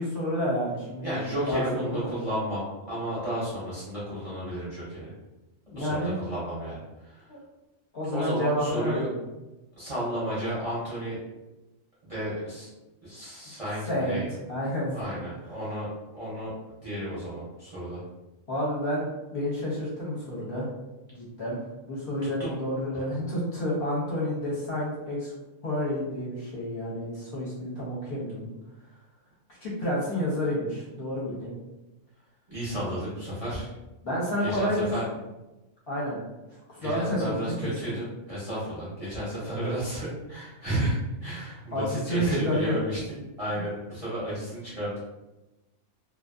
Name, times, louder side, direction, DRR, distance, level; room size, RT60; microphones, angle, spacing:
voice 1, 0.0-1.2 1.5-2.1 5.7-6.1 7.3-7.4 7.9-9.2 13.8-14.2 14.5-14.9 18.5-19.1 19.3-20.7 21.1-25.3 25.6-28.5 29.6-31.5 34.0-34.9 35.9-36.2 36.8-37.9 41.7-42.8, equal, 50° left, -6 dB, 0.8 m, -30 dB
voice 2, 1.0-5.1 5.7-7.2 8.1-9.1 9.8-11.2 12.0-12.7 13.0-14.3 14.9-16.5 16.8-18.0 22.2-22.6 32.5-33.7 34.4-35.1 36.8-43.0 43.4-45.0, right 1 dB, 35° right, -9 dB, 0.6 m, -32 dB
2.5 x 2.3 x 2.4 m, 1.0 s
omnidirectional pair, 1.4 m